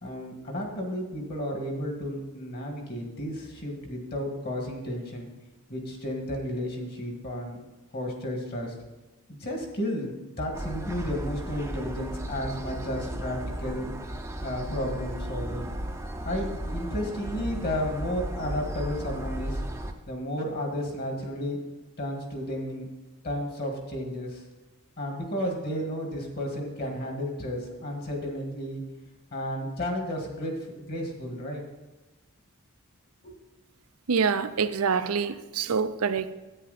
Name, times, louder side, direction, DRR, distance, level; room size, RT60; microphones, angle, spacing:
voice 1, 0.0-5.3 5.7-7.6 7.9-8.7 9.4-13.9 14.4-15.7 16.3-19.6 20.1-21.6 22.0-22.9 23.2-24.4 25.0-28.8 29.3-31.6 33.2-33.3, equal, 45° left, 2 dB, 1.9 m, -32 dB
sound 1, 10.5-19.9, right 1 dB, 10° right, 0.6 m, -35 dB
voice 2, 34.1-36.3, right 5 dB, 80° right, 12 dB, 0.6 m, -26 dB
10.0 x 8.8 x 4.2 m, 1.1 s
head